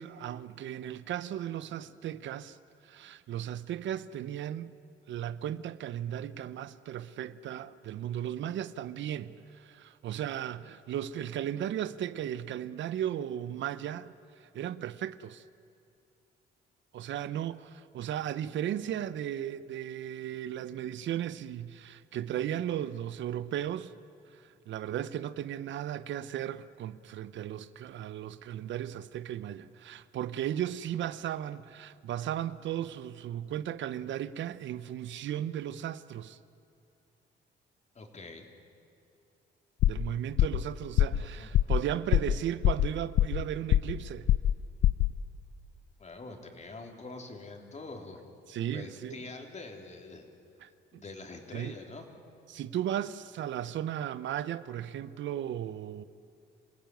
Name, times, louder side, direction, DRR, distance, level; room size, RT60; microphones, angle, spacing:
voice 1, 0.0-2.6 2.8-4.7 5.1-15.4 16.9-23.9 24.3-36.4 39.8-44.3 48.5-49.2 50.6-51.0 51.5-51.8 52.5-56.0, right 11 dB, 70° right, 0.7 m, -36 dB
voice 2, 37.9-38.4 41.1-41.5 46.0-48.3 48.6-50.2 50.9-52.1, left 3 dB, 35° left, 3.4 m, -45 dB
sound 1, 39.8-40.1 40.4-40.7 41.0-41.2 41.5-41.8 42.1-42.4 42.6-43.4 43.7-44.0 44.3-44.6 44.8-45.1, left 12 dB, 70° left, 0.5 m, -23 dB
27.0 x 16.0 x 9.2 m
cardioid pair, 90°, 20 cm